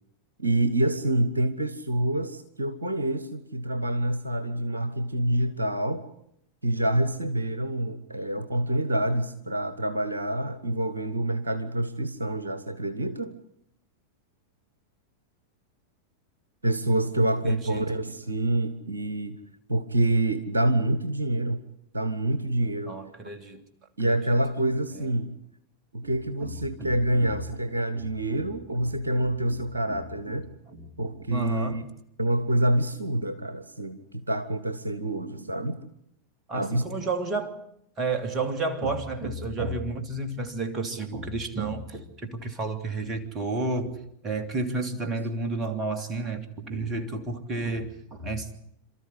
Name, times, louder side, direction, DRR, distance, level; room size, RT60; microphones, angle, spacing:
voice 1, 0.4-6.1 6.6-13.4 16.6-19.4 19.7-21.6 21.9-23.0 24.0-25.3 25.9-30.5 31.0-31.9 32.2-35.8 36.5-36.8, right 1 dB, 80° right, 11 dB, 1.3 m, -27 dB
voice 2, 17.4-17.8 22.9-23.6 24.0-24.2 24.9-25.1 26.0-26.1 26.4-27.4 27.9-28.1 28.3-28.4 28.8-29.6 29.9-31.8 36.5-37.6 38.0-48.5, right 3 dB, 25° right, 8 dB, 3.0 m, -32 dB
28.5 x 13.5 x 10.0 m, 0.75 s
figure-of-eight pair, 90°, 0 cm